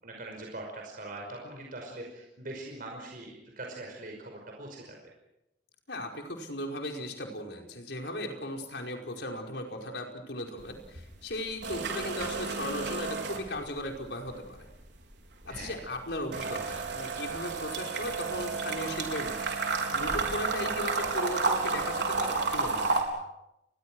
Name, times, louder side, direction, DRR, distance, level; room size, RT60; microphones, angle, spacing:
voice 1, 0.0-5.0 15.5-15.8, right 2 dB, 55° right, 1 dB, 5.5 m, -42 dB
voice 2, 5.9-14.7 15.5-19.5 19.9-23.0, left 1 dB, 75° left, 2 dB, 5.0 m, -37 dB
sound 1, 10.6-11.0 11.3-14.0 14.3-23.0, right 4 dB, 85° right, 4.4 m, -31 dB
30.0 x 22.0 x 6.3 m, 0.89 s
head